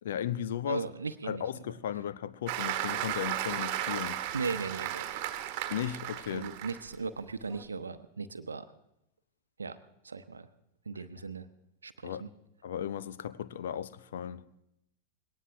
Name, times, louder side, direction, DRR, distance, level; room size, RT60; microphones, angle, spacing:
voice 1, 0.0-0.8 1.2-4.2 5.7-6.5 12.0-12.2 12.6-14.4, left 10 dB, 60° left, 0.6 m, -35 dB
voice 2, 0.7-1.4 4.3-5.2 6.3-8.7 9.6-9.8 10.0-10.5 10.9-11.5 11.8-12.3, right 4 dB, 75° right, 0.8 m, -37 dB
Applause, 2.5-6.9 7.4-7.6, right 12 dB, 45° right, 1.3 m, -35 dB
20.5 x 18.0 x 3.5 m
figure-of-eight pair, 90°, 0 cm